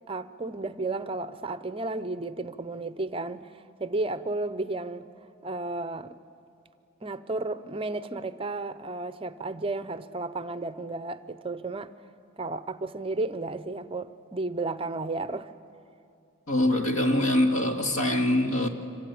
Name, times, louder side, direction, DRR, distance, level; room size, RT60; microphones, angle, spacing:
voice 1, 0.1-5.1 5.4-6.1 7.0-11.9 12.4-15.5, right 2 dB, 25° right, 0.6 m, -33 dB
voice 2, 16.5-18.7, left 1 dB, 85° left, 2.5 m, -24 dB
26.5 x 25.0 x 8.6 m
head